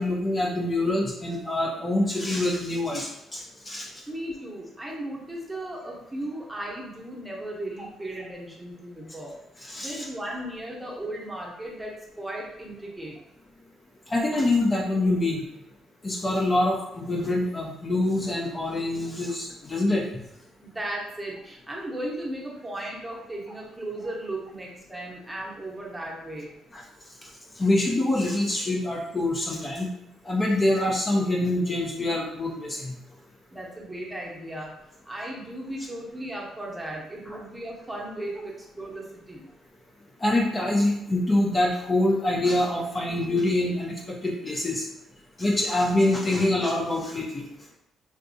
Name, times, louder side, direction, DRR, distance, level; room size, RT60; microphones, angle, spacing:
voice 1, 0.0-3.9 9.6-10.0 14.1-15.4 16.0-20.0 26.7-26.8 27.6-29.9 30.3-32.9 37.3-37.4 40.2-44.9 45.4-47.4, left 1 dB, 30° left, -2 dB, 0.6 m, -25 dB
voice 2, 4.1-9.3 9.7-13.2 20.6-26.5 33.5-34.7 35.1-39.5, right 1 dB, 15° right, -3 dB, 0.9 m, -36 dB
3.5 x 2.6 x 2.7 m, 0.87 s
cardioid pair, 90°, 0 cm